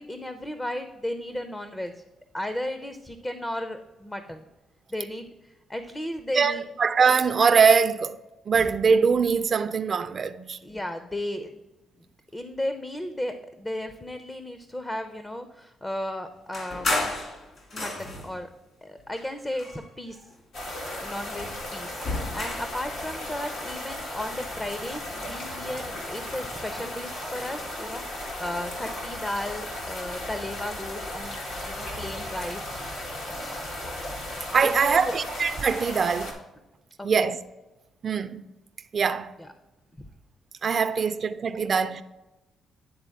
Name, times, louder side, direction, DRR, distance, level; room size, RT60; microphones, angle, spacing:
voice 1, 0.0-2.0 2.3-4.5 4.9-6.6 10.6-11.6 12.3-16.9 17.7-18.5 18.8-20.2 20.7-32.8 33.4-33.7 34.6-35.2 37.0-37.3 39.4-39.5 40.0-40.1, left 1 dB, 15° left, 0.5 m, -35 dB
voice 2, 6.3-8.2 8.5-10.6 34.5-36.4 37.0-37.4 38.0-38.4 38.9-39.3 40.6-42.0, right 5 dB, 45° right, 0.4 m, -22 dB
sound 1, 16.5-18.4 19.1-20.2 20.6-22.8, left 2 dB, 50° left, 2.1 m, -33 dB
sound 2, 20.5-36.3, left 1 dB, 80° left, 1.8 m, -36 dB
10.5 x 3.8 x 3.5 m
cardioid pair, 90°, 0 cm